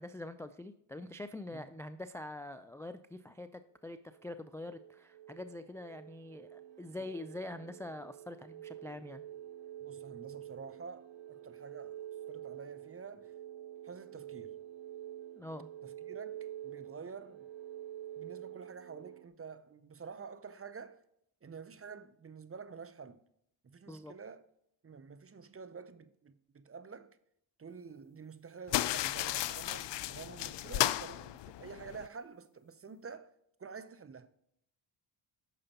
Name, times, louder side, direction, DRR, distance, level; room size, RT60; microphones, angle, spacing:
voice 1, 0.0-9.2 15.4-15.7 23.9-24.1, left 1 dB, 5° left, 0.3 m, -45 dB
sound 1, 4.1-19.3, right 12 dB, 60° right, 0.8 m, -48 dB
voice 2, 9.8-13.4 13.8-14.6 15.8-17.5 18.2-21.0 21.4-23.2 23.6-24.4 24.8-27.2 27.6-34.3, right 5 dB, 30° right, 0.7 m, -49 dB
sound 2, 28.7-32.1, left 14 dB, 60° left, 0.5 m, -34 dB
8.9 x 6.7 x 2.9 m
cardioid pair, 60°, 49 cm